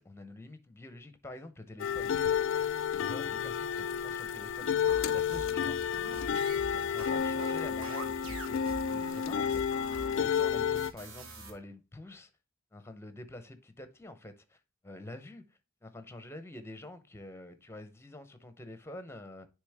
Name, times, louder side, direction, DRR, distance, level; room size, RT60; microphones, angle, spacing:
voice 1, 0.0-2.1 3.0-4.7 5.1-5.8 6.1-6.5 6.7-9.8 10.1-12.3 12.7-14.6 14.8-19.5, left 1 dB, 10° left, 0.7 m, -47 dB
sound 1, 1.8-10.9, left 8 dB, 65° left, 0.4 m, -31 dB
sound 2, 4.9-11.5, right 2 dB, 75° right, 1.5 m, -45 dB
9.9 x 3.4 x 3.4 m
head